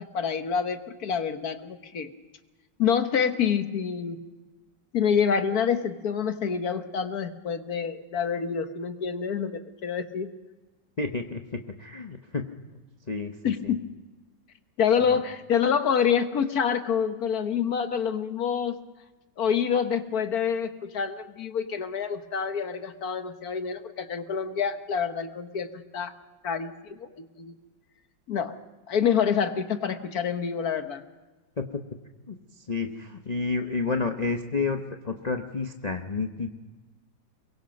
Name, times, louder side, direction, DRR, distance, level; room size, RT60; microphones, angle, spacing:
voice 1, 0.0-2.1 2.8-4.2 4.9-10.3 13.4-13.8 14.8-18.8 19.4-26.1 26.4-27.5 28.3-28.5 28.9-31.0, left 7 dB, 55° left, 9 dB, 1.5 m, -27 dB
voice 2, 11.0-12.5 13.1-13.7 15.0-15.2 31.6-31.7 32.3-32.4 32.7-36.5, left 4 dB, 30° left, 5 dB, 0.8 m, -30 dB
23.0 x 22.5 x 5.3 m, 1.2 s
omnidirectional pair, 2.0 m